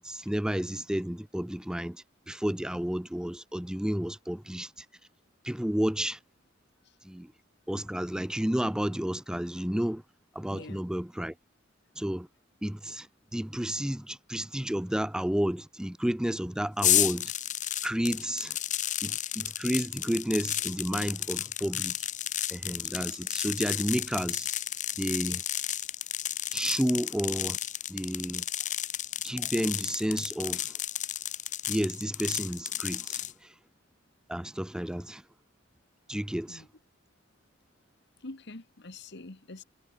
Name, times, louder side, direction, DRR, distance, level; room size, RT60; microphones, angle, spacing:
voice 1, 0.0-4.9 5.4-6.2 7.0-7.3 7.7-10.0 10.3-11.3 12.0-12.3 12.6-17.3 17.8-18.6 19.0-22.1 22.5-24.5 25.0-25.4 26.5-27.6 27.9-28.4 29.2-30.7 31.7-33.5 34.3-35.2 36.1-36.6, equal, 5° right, 0.4 m, -31 dB
voice 2, 10.5-10.9 28.6-28.7 36.5-36.7 38.2-39.6, left 2 dB, 60° left, 1.5 m, -45 dB
sound 1, 16.8-33.3, left 11 dB, 40° left, 1.6 m, -32 dB
head